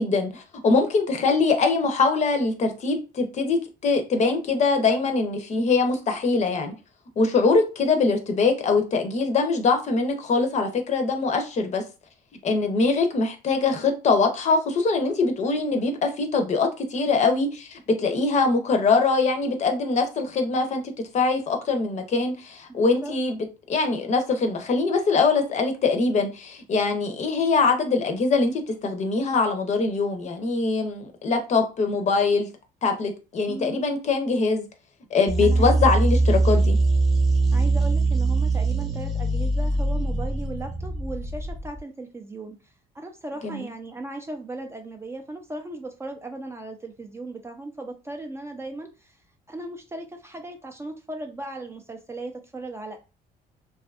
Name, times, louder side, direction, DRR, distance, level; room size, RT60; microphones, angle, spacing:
voice 1, 0.0-6.7 7.2-11.8 12.4-20.8 21.1-23.4 23.7-32.5 32.8-34.6 35.1-36.8 43.4-43.7, left 4 dB, 45° left, 0.6 m, -23 dB
voice 2, 22.7-23.2 33.5-33.8 35.4-36.0 37.5-49.2 49.5-53.0, right 2 dB, 15° right, 0.4 m, -37 dB
sound 1, 35.3-41.8, right 2 dB, ahead, 0.7 m, -22 dB
2.6 x 2.3 x 2.3 m
cardioid pair, 110°, 17 cm